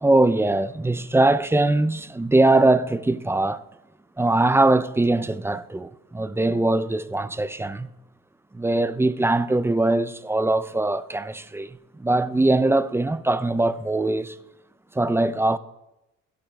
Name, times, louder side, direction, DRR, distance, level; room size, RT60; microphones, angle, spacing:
voice 1, 0.0-3.6 4.2-7.9 8.5-11.7 12.0-14.4 14.9-15.6, right 2 dB, 10° right, 0.3 m, -21 dB
16.5 x 12.0 x 2.2 m
cardioid pair, 90°, 30 cm